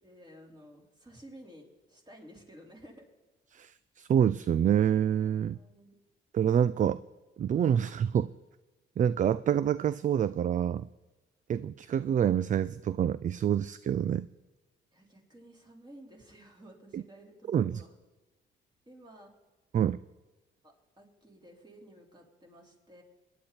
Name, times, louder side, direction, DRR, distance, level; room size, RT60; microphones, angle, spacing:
voice 1, 0.0-3.0 5.5-6.0 14.9-17.9 18.9-19.3 19.7-19.8 20.6-23.0, right 1 dB, 20° right, -1 dB, 4.3 m, -53 dB
voice 2, 3.5-5.6 6.3-7.0 7.4-8.3 9.0-10.9 11.5-14.3 16.9-17.0 17.5-17.8 19.7-20.0, right 9 dB, 40° right, 17 dB, 0.4 m, -27 dB
23.0 x 10.5 x 4.3 m, 1.1 s
cardioid pair, 90°, 20 cm